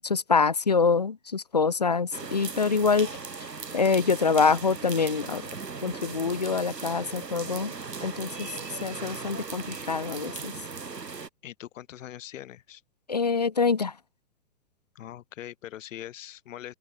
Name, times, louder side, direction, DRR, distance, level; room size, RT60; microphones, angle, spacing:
voice 1, 0.0-3.1 3.7-5.4 5.8-7.7 8.0-8.5 8.8-10.5 13.1-13.9, left 5 dB, 30° left, 0.3 m, -25 dB
sound 1, 2.1-11.3, right 4 dB, 80° right, 6.2 m, -38 dB
voice 2, 11.4-12.8 15.0-16.7, left 12 dB, 50° left, 7.2 m, -42 dB
open air
figure-of-eight pair, 125°, 48 cm